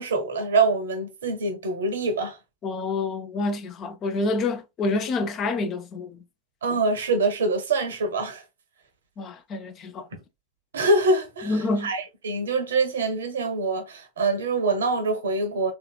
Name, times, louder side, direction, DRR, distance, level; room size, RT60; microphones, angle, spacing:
voice 1, 0.0-2.4 6.6-8.4 10.7-11.5 11.8-15.7, right 3 dB, 65° right, 0.8 m, -24 dB
voice 2, 2.6-6.2 9.2-10.1 11.4-11.9, left 3 dB, 30° left, 0.5 m, -28 dB
3.2 x 2.8 x 2.3 m
figure-of-eight pair, 90°, 0 cm